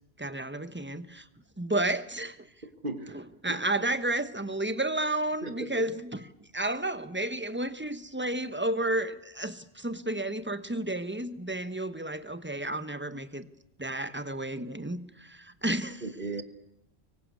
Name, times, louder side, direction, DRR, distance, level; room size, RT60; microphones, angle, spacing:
voice 1, 0.2-1.2 1.6-2.4 3.1-6.3 6.5-13.5 13.8-16.0, right 1 dB, 10° right, 12 dB, 1.1 m, -32 dB
voice 2, 2.6-3.2 3.5-3.6 5.4-5.7 16.0-16.4, right 2 dB, 50° right, 7 dB, 2.6 m, -36 dB
25.5 x 23.5 x 8.4 m, 0.78 s
omnidirectional pair, 1.1 m